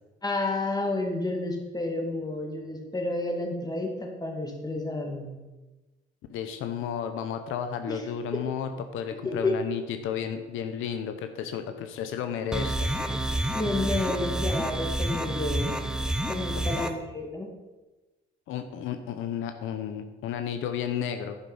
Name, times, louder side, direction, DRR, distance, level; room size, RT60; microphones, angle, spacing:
voice 1, 0.2-5.4 7.9-8.0 9.2-9.6 13.5-15.8 16.3-17.5, left 2 dB, 20° left, 2 dB, 2.4 m, -30 dB
voice 2, 6.3-12.9 16.6-16.7 18.5-21.4, left 8 dB, 90° left, 8 dB, 0.8 m, -33 dB
sound 1, 12.5-16.9, right 1 dB, 5° right, 0.9 m, -29 dB
9.9 x 8.0 x 5.6 m, 1.2 s
cardioid pair, 90°, 20 cm